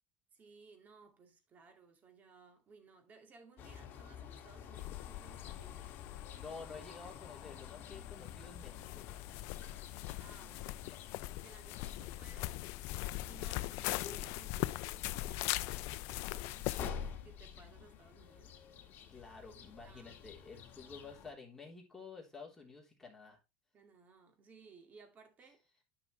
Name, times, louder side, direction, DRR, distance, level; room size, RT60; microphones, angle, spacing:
voice 1, 0.3-5.9 10.2-10.9 11.4-12.6 13.2-18.6 19.6-20.2 23.7-25.7, right 4 dB, 30° right, 2.2 m, -60 dB
sound 1, 3.6-21.3, left 8 dB, 40° left, 1.6 m, -50 dB
sound 2, 4.7-16.9, left 18 dB, 60° left, 0.5 m, -41 dB
voice 2, 6.3-9.0 19.1-23.4, left 4 dB, 10° left, 3.3 m, -51 dB
9.8 x 6.2 x 3.1 m
supercardioid pair, 120°, 5 cm